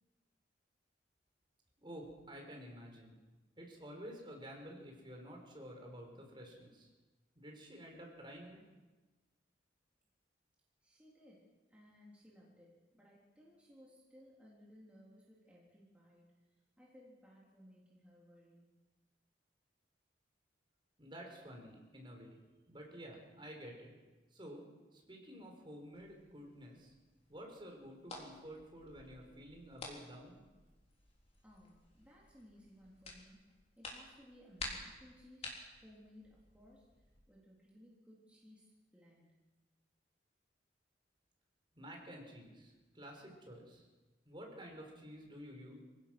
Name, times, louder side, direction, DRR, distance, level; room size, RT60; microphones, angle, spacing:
voice 1, 1.8-3.2 3.6-6.9 7.3-8.6 21.0-22.4 22.7-23.9 24.3-24.6 24.9-26.9 27.3-30.4 41.7-43.9 44.3-45.8, equal, 25° right, 1 dB, 4.5 m, -51 dB
voice 2, 10.8-18.7 31.4-33.4 33.8-35.5 35.8-39.4, equal, 5° right, -5 dB, 3.5 m, -61 dB
sound 1, 26.0-37.2, left 2 dB, 35° left, 4.0 m, -52 dB
26.5 x 17.0 x 6.1 m, 1.2 s
head